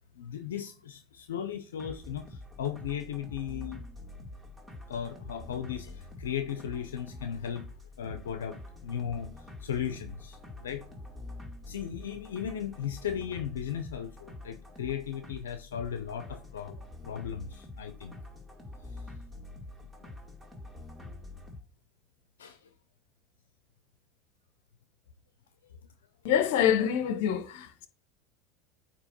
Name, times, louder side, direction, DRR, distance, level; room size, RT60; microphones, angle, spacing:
voice 1, 0.2-3.8 4.9-7.7 8.0-9.3 9.6-10.8 11.7-18.2 20.0-20.1 22.4-22.6, left 8 dB, 90° left, 0.7 m, -36 dB
sound 1, 1.8-21.6, left 2 dB, 10° right, 2.2 m, -46 dB
voice 2, 26.2-27.9, left 9 dB, 70° left, 0.9 m, -26 dB
8.9 x 3.0 x 4.4 m
hypercardioid pair, 90°, 0 cm